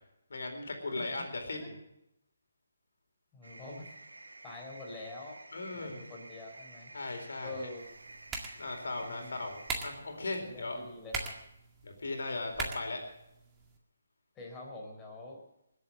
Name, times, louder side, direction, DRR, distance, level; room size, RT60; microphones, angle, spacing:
voice 1, 0.3-1.8 5.5-6.0 6.9-7.7 8.6-10.8 11.8-13.0, left 2 dB, 70° left, 3 dB, 4.2 m, -38 dB
voice 2, 3.3-4.0 4.4-5.4 5.7-6.9 7.4-7.9 9.0-9.4 10.4-11.4 14.4-15.4, left 2 dB, 15° left, -1 dB, 4.0 m, -45 dB
sound 1, 3.4-9.8, right 2 dB, 90° right, 1.8 m, -51 dB
sound 2, 7.8-13.8, right 4 dB, 15° right, 1.9 m, -43 dB
20.0 x 8.4 x 7.8 m, 0.81 s
figure-of-eight pair, 155°, 0 cm